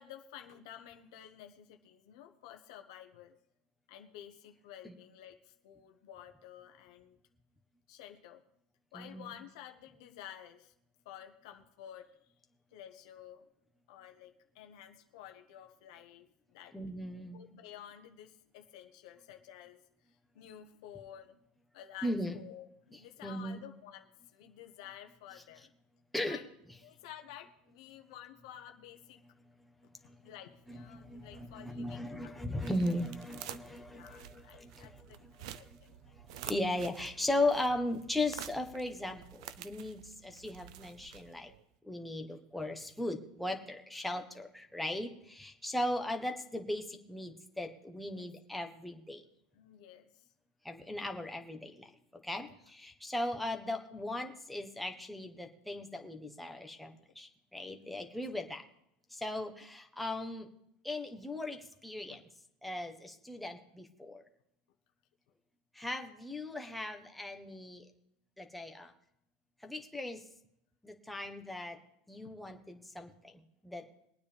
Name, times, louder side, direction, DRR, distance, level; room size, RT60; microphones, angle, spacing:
voice 1, 0.0-3.3 3.9-7.2 7.9-8.4 8.9-10.7 11.0-12.3 12.7-13.5 13.9-16.8 17.3-19.8 20.3-21.4 21.7-25.7 26.2-26.4 26.8-29.2 30.2-32.5 32.8-32.9 33.9-36.0 48.1-48.3 49.5-50.1 52.3-52.5 56.9-57.0 57.8-58.2 62.1-62.2, left 10 dB, 75° left, 5 dB, 1.2 m, -52 dB
voice 2, 8.9-9.4 16.7-17.4 22.0-22.4 23.2-23.6 26.1-26.4 30.0-30.2 30.7-35.8 36.1-41.5 41.8-49.2 50.6-51.9 52.2-58.6 59.1-60.5 60.8-62.2 62.6-64.2 65.7-67.9 68.4-68.9 69.6-70.2 70.8-71.8 72.1-73.8, left 1 dB, ahead, 3 dB, 1.3 m, -38 dB
sound 1, 30.6-41.6, right 12 dB, 80° right, 0.7 m, -50 dB
22.0 x 9.3 x 3.5 m, 0.75 s
supercardioid pair, 150°, 3 cm